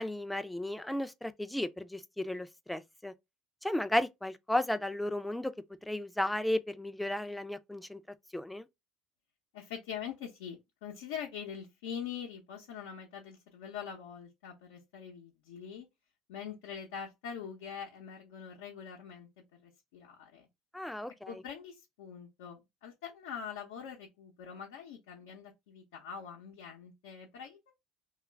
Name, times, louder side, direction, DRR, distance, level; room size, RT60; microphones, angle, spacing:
voice 1, 0.0-3.1 3.6-5.5 5.9-8.0 8.3-8.7 20.7-21.3, left 1 dB, 5° left, 0.4 m, -34 dB
voice 2, 9.5-15.9 16.3-20.5 21.3-27.7, left 7 dB, 80° left, 0.7 m, -44 dB
3.0 x 2.4 x 3.3 m
hypercardioid pair, 70°, 0 cm